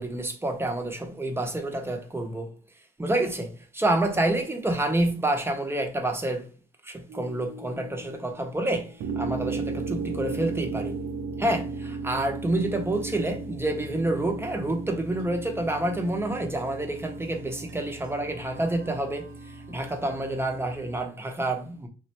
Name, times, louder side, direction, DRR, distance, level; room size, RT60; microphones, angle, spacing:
voice 1, 0.0-2.5 3.0-6.5 6.8-10.9 11.4-21.9, right 1 dB, 10° right, 0.7 m, -28 dB
sound 1, 7.1-8.7 9.0-21.0, right 4 dB, 75° right, 0.5 m, -36 dB
3.1 x 2.5 x 2.8 m
cardioid pair, 90°, 20 cm